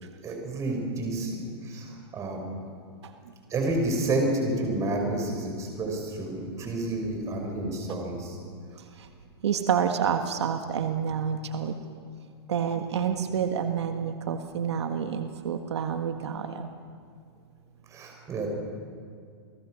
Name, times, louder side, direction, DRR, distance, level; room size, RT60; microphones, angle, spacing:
voice 1, 0.2-2.4 3.5-8.4 17.9-18.5, right 2 dB, 20° right, 2 dB, 5.7 m, -30 dB
voice 2, 9.4-11.7 12.5-16.7, right 7 dB, 85° right, 6 dB, 1.7 m, -28 dB
29.0 x 19.0 x 6.4 m, 2.3 s
hypercardioid pair, 145°, 14 cm